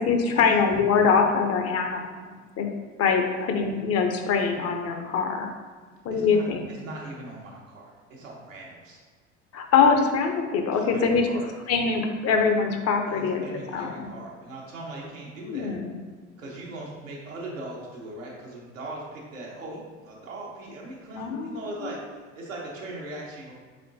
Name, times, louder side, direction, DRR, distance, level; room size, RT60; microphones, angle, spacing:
voice 1, 0.0-2.0 2.6-2.7 3.0-5.5 6.0-6.6 9.5-11.3 11.7-14.0 15.4-16.0 21.2-21.9, left 5 dB, 40° left, 4 dB, 0.6 m, -23 dB
voice 2, 6.1-9.0 10.7-11.5 13.1-15.8 16.4-23.5, right 2 dB, 85° right, -3 dB, 1.0 m, -39 dB
4.3 x 3.6 x 2.7 m, 1.5 s
hypercardioid pair, 70°, 38 cm